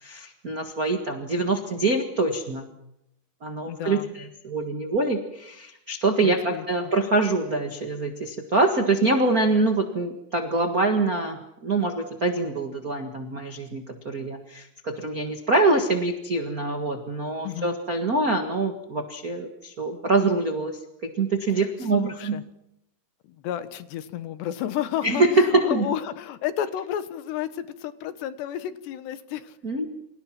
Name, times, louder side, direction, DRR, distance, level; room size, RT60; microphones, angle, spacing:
voice 1, 0.0-2.6 3.4-22.4 25.0-25.8 29.6-29.9, right 2 dB, 80° right, 4 dB, 0.8 m, -25 dB
voice 2, 3.6-4.1 6.2-6.7 17.4-17.8 21.6-21.7 21.9-22.4 23.4-29.6, left 10 dB, 80° left, 11 dB, 3.4 m, -32 dB
29.0 x 26.0 x 6.0 m, 0.82 s
omnidirectional pair, 5.0 m